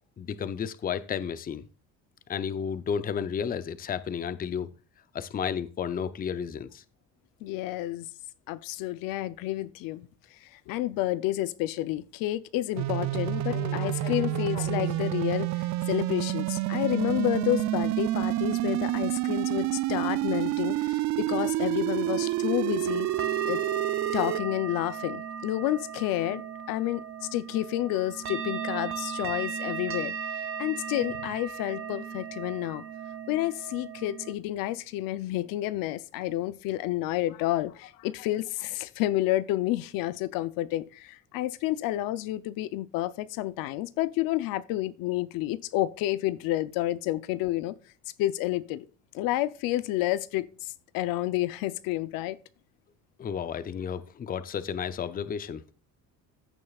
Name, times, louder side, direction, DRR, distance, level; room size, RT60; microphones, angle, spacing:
voice 1, 0.2-1.6 2.3-4.7 5.1-6.8 53.2-55.6, left 7 dB, 25° left, 0.6 m, -32 dB
voice 2, 7.4-8.1 8.5-10.1 10.7-23.1 23.5-23.6 24.1-26.4 26.7-27.0 27.3-30.1 30.6-32.8 33.3-47.7 48.2-48.9 49.1-52.4, left 15 dB, 80° left, 0.7 m, -30 dB
sound 1, 12.8-24.4, right 16 dB, 55° right, 0.4 m, -28 dB
sound 2, 22.0-34.3, right 6 dB, 40° right, 0.8 m, -37 dB
14.5 x 6.4 x 2.4 m
cardioid pair, 115°, 33 cm